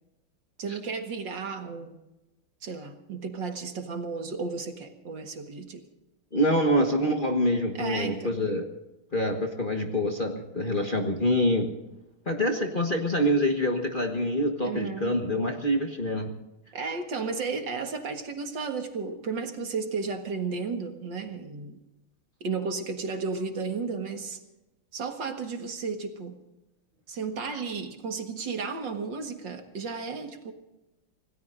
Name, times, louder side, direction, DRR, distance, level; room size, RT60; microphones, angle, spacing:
voice 1, 0.6-2.0 2.6-5.8 7.7-8.3 14.6-15.2 16.7-21.8 22.4-24.4 24.9-26.4 27.1-30.5, right 4 dB, 60° right, 5 dB, 2.3 m, -33 dB
voice 2, 6.3-8.7 9.1-11.7 12.3-16.3, equal, 30° left, 2 dB, 1.4 m, -26 dB
27.0 x 18.0 x 2.6 m, 0.96 s
omnidirectional pair, 2.3 m